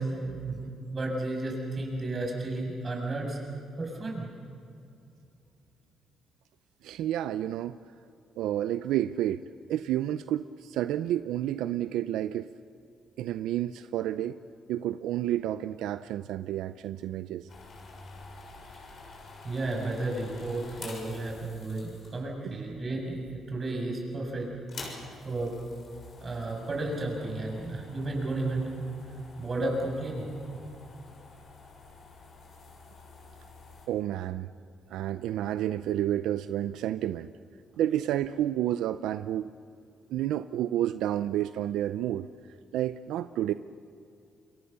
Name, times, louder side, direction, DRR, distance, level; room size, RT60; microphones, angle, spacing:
voice 1, 0.0-3.4 3.8-4.2 19.4-24.5 25.2-25.5 26.2-28.9 29.4-30.3, right 2 dB, 35° right, 1 dB, 7.4 m, -33 dB
voice 2, 6.8-7.8 8.4-9.4 9.7-12.5 13.2-14.4 14.7-17.5 22.4-22.6 33.9-34.5 34.9-37.3 37.8-39.5 40.1-42.3 42.7-43.5, right 12 dB, 90° right, 12 dB, 0.5 m, -30 dB
sound 1, 17.5-22.4 23.2-23.6 23.9-24.0 24.5-33.9, left 3 dB, 55° left, 6.7 m, -48 dB
28.5 x 22.5 x 6.9 m, 2.6 s
cardioid pair, 90°, 0 cm